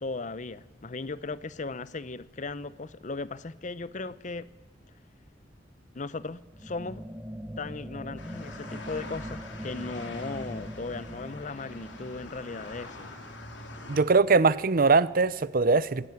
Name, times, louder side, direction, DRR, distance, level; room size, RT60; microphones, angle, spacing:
voice 1, 0.0-4.5 5.9-7.1 7.6-13.1, left 3 dB, 45° left, 0.7 m, -37 dB
sound 1, 6.5-13.3, equal, 10° right, 1.0 m, -42 dB
sound 2, 8.2-14.0, left 2 dB, 85° left, 3.3 m, -44 dB
voice 2, 13.9-16.1, right 4 dB, 50° right, 0.7 m, -22 dB
21.0 x 16.5 x 9.4 m
head